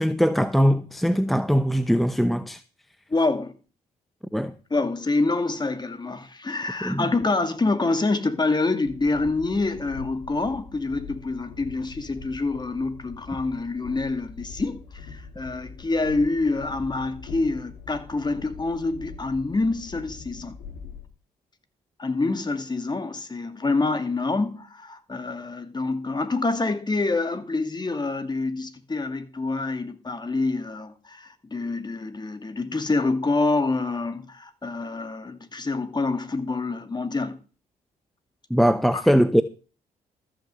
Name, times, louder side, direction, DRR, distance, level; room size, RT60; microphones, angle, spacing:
voice 1, 0.0-2.6 4.3-4.5 6.8-7.0 38.5-39.4, equal, ahead, 0.8 m, -21 dB
voice 2, 3.1-3.5 4.7-20.6 22.0-37.4 38.9-39.0, left 3 dB, 25° left, 2.4 m, -26 dB
Train, 8.8-21.1, left 5 dB, 75° left, 2.5 m, -43 dB
14.0 x 6.5 x 7.7 m
supercardioid pair, 60°, 17 cm